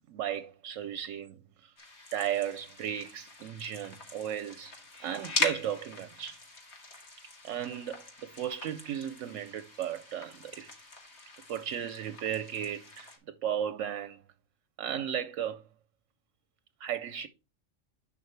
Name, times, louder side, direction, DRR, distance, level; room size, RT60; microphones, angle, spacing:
voice 1, 0.1-1.4 1.6-1.7 2.1-4.7 5.0-6.4 7.4-10.7 11.5-13.1 13.4-14.2 14.8-15.6 16.8-17.3, right 9 dB, 70° right, 0.9 m, -35 dB
sound 1, 1.8-13.2, left 2 dB, 55° left, 2.0 m, -41 dB
11.0 x 5.7 x 3.2 m
omnidirectional pair, 1.4 m